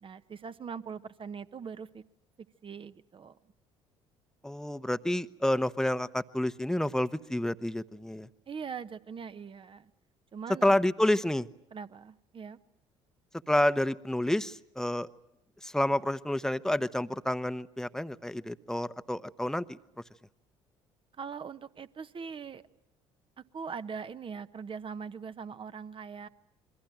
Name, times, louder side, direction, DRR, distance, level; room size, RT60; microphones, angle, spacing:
voice 1, 0.0-2.0 2.6-3.4 8.5-9.9 10.3-10.7 11.7-12.6 21.2-22.6 23.5-26.3, right 6 dB, 35° right, 12 dB, 1.2 m, -41 dB
voice 2, 4.4-8.3 10.6-11.5 13.5-15.1 15.6-19.8, left 1 dB, 5° left, 14 dB, 1.0 m, -29 dB
28.0 x 23.0 x 9.0 m, 0.77 s
figure-of-eight pair, 55°, 15 cm